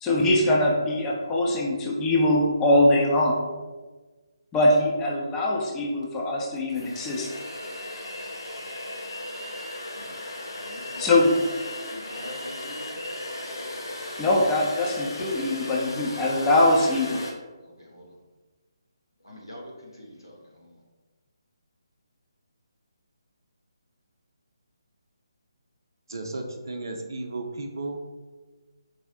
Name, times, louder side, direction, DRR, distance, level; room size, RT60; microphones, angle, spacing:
voice 1, 0.0-3.4 4.5-7.3 11.0-11.4 14.2-17.3, left 1 dB, 15° left, -2 dB, 0.5 m, -22 dB
sound 1, 6.0-6.1 6.6-17.3, left 1 dB, 65° left, 0.7 m, -36 dB
voice 2, 10.5-11.5 11.9-13.0 17.6-18.2 19.2-20.8, equal, 85° left, -2 dB, 1.2 m, -44 dB
voice 3, 26.1-28.0, right 2 dB, 55° right, 4 dB, 0.5 m, -34 dB
4.7 x 2.0 x 4.1 m, 1.3 s
figure-of-eight pair, 145°, 2 cm